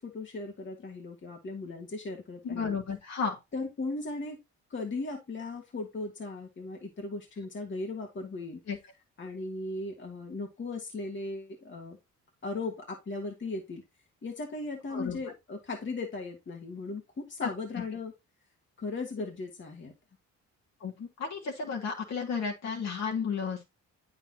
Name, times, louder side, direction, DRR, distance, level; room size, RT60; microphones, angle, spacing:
voice 1, 0.0-2.8 3.5-4.4 4.7-8.6 9.2-12.0 12.4-13.8 14.2-18.1 18.8-19.9, left 3 dB, 40° left, 1 dB, 2.7 m, -37 dB
voice 2, 2.4-3.4 8.7-8.8 14.9-15.2 20.8-23.8, left 5 dB, 60° left, 0 dB, 3.6 m, -33 dB
9.0 x 7.4 x 2.9 m, 0.23 s
cardioid pair, 90°, 30 cm